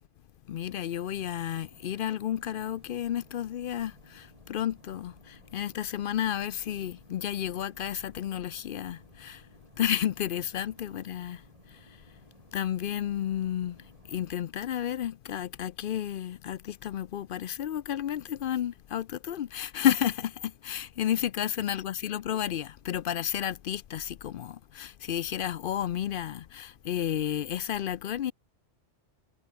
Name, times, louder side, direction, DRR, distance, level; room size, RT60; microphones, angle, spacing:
voice 1, 0.5-9.4 9.8-11.4 12.5-13.8 14.1-28.3, left 10 dB, 60° left, 0.6 m, -32 dB
sound 1, 0.6-14.4, right 2 dB, 30° right, 3.3 m, -58 dB
omnidirectional pair, 1.2 m